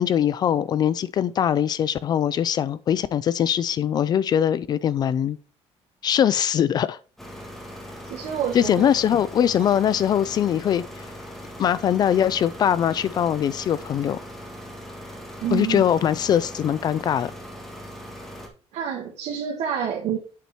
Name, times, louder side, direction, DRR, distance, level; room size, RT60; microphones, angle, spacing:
voice 1, 0.0-5.4 6.0-7.0 8.5-11.1 11.6-14.2 15.5-17.3, left 9 dB, 40° left, 0.4 m, -22 dB
sound 1, 7.2-18.5, equal, 5° left, 1.6 m, -40 dB
voice 2, 8.1-8.9 15.4-15.8 18.7-20.2, right 8 dB, 75° right, 1.6 m, -28 dB
8.3 x 4.5 x 4.2 m
cardioid pair, 160°, 11 cm